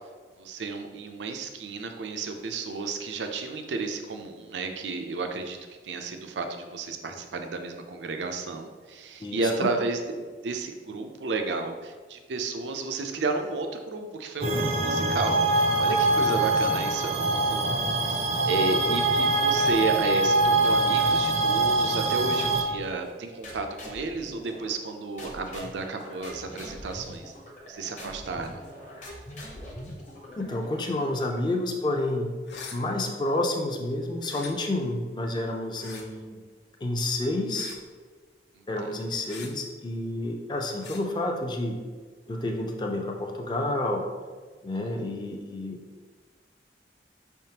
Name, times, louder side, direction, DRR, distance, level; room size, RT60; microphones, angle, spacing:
voice 1, 0.4-5.6 5.8-27.3 27.6-28.6 38.6-38.7, right 3 dB, 85° right, 5 dB, 0.5 m, -32 dB
voice 2, 9.2-9.7 30.4-32.3 32.7-36.4 36.8-37.7 38.7-41.8 42.3-44.1 44.6-45.8, left 1 dB, 25° left, 2 dB, 0.4 m, -29 dB
sound 1, 14.4-22.6, right 2 dB, 35° right, 0.4 m, -24 dB
sound 2, 19.6-20.2 20.6-21.8 22.4-22.9 23.4-24.9 25.2-30.9, equal, 40° left, 0.8 m, -44 dB
sound 3, 32.4-32.8 34.2-34.5 35.7-36.0 37.5-37.8 39.3-39.5 40.8-41.0, left 5 dB, 75° left, 0.6 m, -42 dB
5.4 x 3.5 x 2.8 m, 1.5 s
head